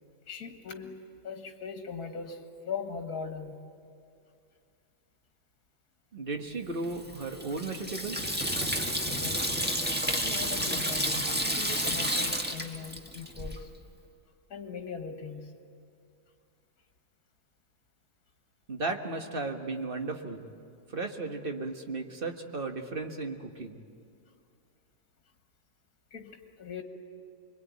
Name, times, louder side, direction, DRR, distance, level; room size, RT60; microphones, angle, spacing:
voice 1, 0.3-3.6 9.2-9.5 10.1-13.7 14.5-15.5 26.1-26.8, left 5 dB, 60° left, 5 dB, 2.1 m, -40 dB
voice 2, 6.1-8.4 18.7-20.5 20.9-23.8, right 3 dB, 35° right, 4 dB, 1.6 m, -35 dB
Water tap faucet / Sink (filling or washing), 6.8-13.6, equal, 5° right, 1.4 m, -31 dB
26.5 x 22.5 x 9.4 m, 2.4 s
omnidirectional pair, 1.8 m